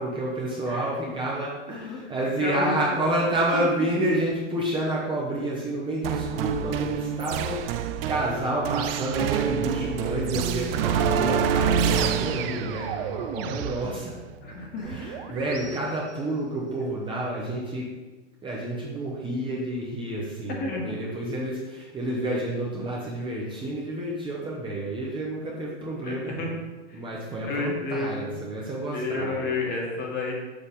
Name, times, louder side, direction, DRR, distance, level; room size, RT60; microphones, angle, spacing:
voice 1, 0.0-14.1 14.8-17.9 18.4-26.5 26.9-29.5, right 1 dB, 15° right, -4 dB, 0.9 m, -29 dB
voice 2, 2.4-3.0 3.5-3.7 6.7-6.8 14.4-14.9 20.5-21.0 26.0-26.6 26.9-27.0 27.5-28.4 28.9-30.3, left 3 dB, 25° left, -1 dB, 1.5 m, -31 dB
sound 1, 6.0-15.8, right 7 dB, 50° right, 0.5 m, -27 dB
6.8 x 5.7 x 3.6 m, 1.2 s
hypercardioid pair, 135°, 37 cm